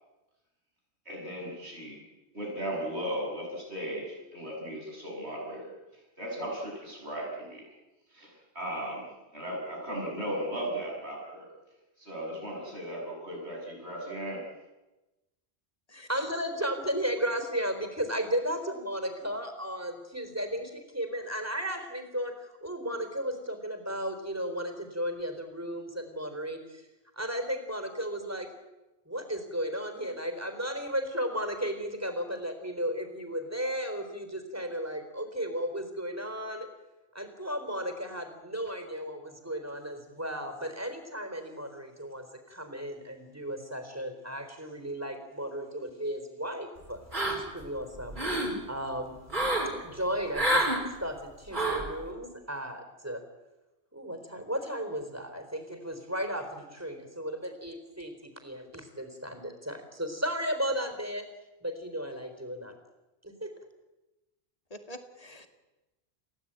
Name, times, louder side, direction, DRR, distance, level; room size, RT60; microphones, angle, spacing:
voice 1, 1.1-2.0 2.3-5.7 6.2-7.6 8.1-8.3 8.6-9.1 9.3-11.4 12.0-14.4, right 1 dB, 85° right, -2 dB, 7.4 m, -36 dB
voice 2, 15.9-26.9 27.2-28.5 29.1-36.7 37.1-47.0 47.3-48.2 48.7-49.2 49.8-50.7 51.0-53.2 53.9-61.3 61.6-62.7 63.2-63.5, equal, 15° right, 7 dB, 4.1 m, -34 dB
sound 1, 47.1-47.6 48.0-48.5 49.3-49.7 50.3-50.8 51.5-51.9, right 1 dB, 45° right, 4.9 m, -27 dB
voice 3, 64.7-65.5, equal, 35° left, 6 dB, 2.5 m, -46 dB
29.5 x 17.0 x 9.0 m, 1.1 s
omnidirectional pair, 1.1 m